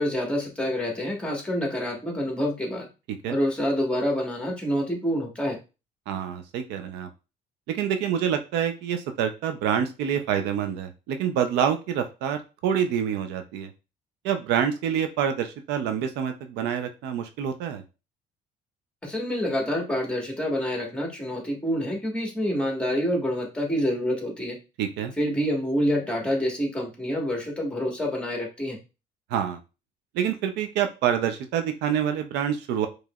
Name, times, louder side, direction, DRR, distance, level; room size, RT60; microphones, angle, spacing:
voice 1, 0.0-2.9 3.3-5.6 19.0-24.6 25.2-28.8, equal, 5° left, 0 dB, 1.5 m, -27 dB
voice 2, 6.1-7.1 7.7-13.7 14.2-17.8 24.8-25.1 29.3-29.6 30.1-32.9, right 8 dB, 90° right, 7 dB, 0.6 m, -27 dB
4.9 x 3.1 x 2.4 m, 0.29 s
cardioid pair, 110°, 17 cm